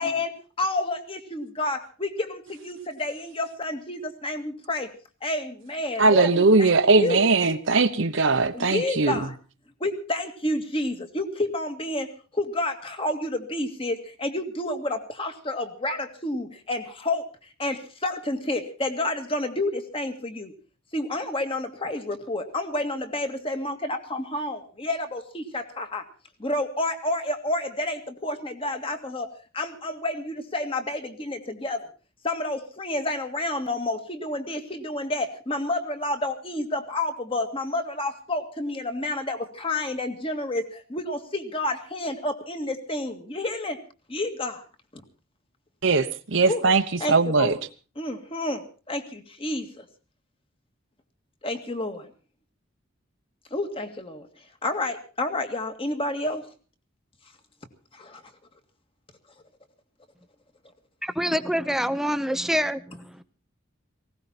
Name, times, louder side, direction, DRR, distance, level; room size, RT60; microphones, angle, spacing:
voice 1, 0.0-4.9 5.2-7.2 8.5-9.3 9.8-17.2 17.6-20.5 20.9-26.0 26.4-29.3 29.5-31.8 32.2-43.8 44.1-44.6 44.9-45.0 46.5-46.6 47.0-47.6 48.0-49.9 51.4-52.1 53.5-54.3 54.6-56.4 57.9-58.2, left 2 dB, 30° left, 2.0 m, -30 dB
voice 2, 6.0-9.2 45.8-46.8 47.1-47.5, right 3 dB, 75° right, 1.1 m, -20 dB
voice 3, 61.0-63.2, equal, ahead, 0.8 m, -26 dB
19.0 x 17.0 x 4.3 m
head